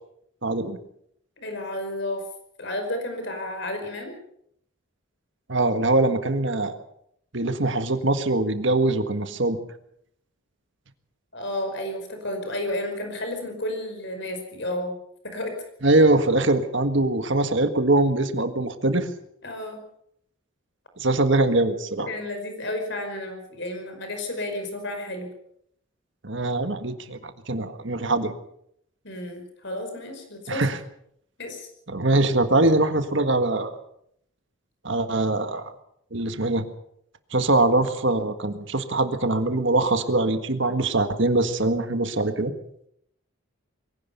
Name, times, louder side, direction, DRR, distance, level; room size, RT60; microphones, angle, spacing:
voice 1, 0.4-0.8 5.5-6.8 7.3-9.6 15.8-19.1 21.0-22.1 26.2-28.3 30.5-30.8 31.9-33.7 34.8-35.7 36.1-36.7 37.3-42.5, right 2 dB, 55° right, 8 dB, 1.7 m, -22 dB
voice 2, 1.4-2.2 2.6-4.1 11.3-15.0 15.2-15.5 19.4-19.8 22.1-25.3 29.0-30.7 31.4-31.7, left 1 dB, 55° left, 6 dB, 5.2 m, -32 dB
23.0 x 16.5 x 6.9 m, 0.72 s
head